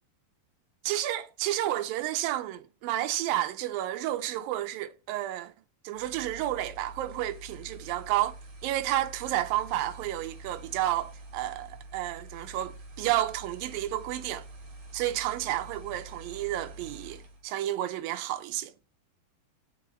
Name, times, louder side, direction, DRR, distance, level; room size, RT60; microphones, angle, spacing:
voice 1, 0.8-5.5 5.8-8.3 8.6-14.5 14.9-18.7, right 13 dB, 80° right, 2.3 m, -31 dB
sound 1, 5.9-17.5, right 2 dB, 55° right, 2.9 m, -47 dB
6.8 x 4.8 x 6.5 m
omnidirectional pair, 4.5 m